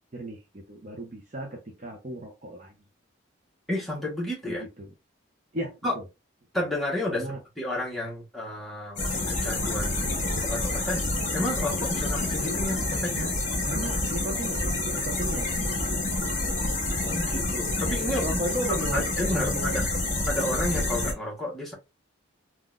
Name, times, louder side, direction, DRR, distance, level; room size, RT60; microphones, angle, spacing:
voice 1, 0.1-2.8 4.4-4.9 5.5-5.8 7.1-7.4 13.6-14.6 14.9-15.7 18.2-19.1 19.3-19.7, right 1 dB, 35° right, 0.6 m, -35 dB
voice 2, 3.7-4.6 5.8-6.0 6.5-10.1 10.4-13.3 17.0-18.4 18.7-19.9 20.3-21.7, left 1 dB, ahead, 1.2 m, -31 dB
sound 1, 9.0-21.1, left 2 dB, 40° left, 1.2 m, -28 dB
3.7 x 2.3 x 2.4 m
head